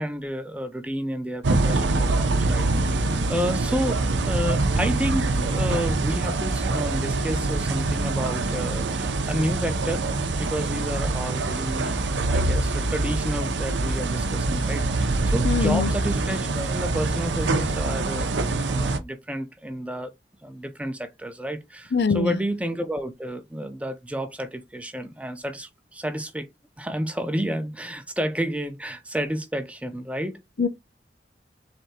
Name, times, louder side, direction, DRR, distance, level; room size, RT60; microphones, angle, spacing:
voice 1, 0.0-12.0 12.3-18.3 18.6-20.1 20.4-26.5 26.8-30.4, equal, 5° right, 0.5 m, -31 dB
sound 1, 1.4-19.0, right 2 dB, 80° right, 0.6 m, -24 dB
voice 2, 15.4-15.9 21.9-22.4 30.6-30.7, left 5 dB, 65° left, 0.5 m, -22 dB
3.8 x 3.4 x 4.2 m
head